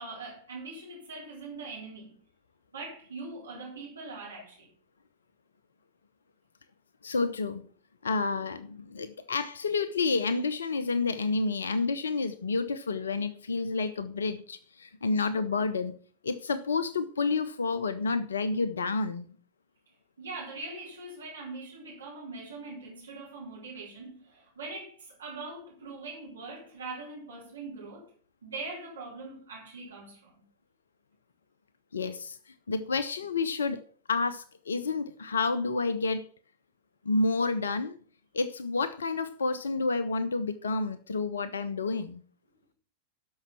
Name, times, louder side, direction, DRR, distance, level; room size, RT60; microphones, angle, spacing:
voice 1, 0.0-2.2 2.7-4.7 20.2-28.1 28.4-30.3, right 3 dB, 75° right, 4.0 m, -42 dB
voice 2, 7.0-7.7 8.0-15.9 16.2-19.3 31.9-33.8 34.1-36.3 37.0-38.0 38.3-42.2, left 4 dB, 70° left, 0.7 m, -30 dB
13.0 x 5.5 x 5.9 m
figure-of-eight pair, 90°, 0 cm